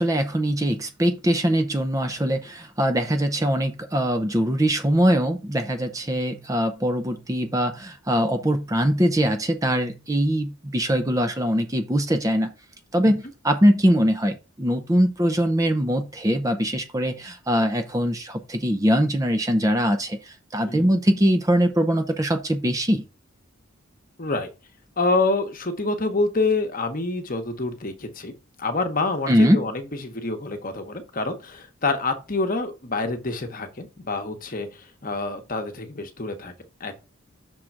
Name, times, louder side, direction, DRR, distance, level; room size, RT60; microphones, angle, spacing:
voice 1, 0.0-12.5 12.9-23.0 29.3-29.6, equal, 15° right, 0.6 m, -22 dB
voice 2, 24.2-24.5 25.0-36.5 36.8-36.9, left 3 dB, 40° left, 1.0 m, -27 dB
6.3 x 3.8 x 5.9 m
head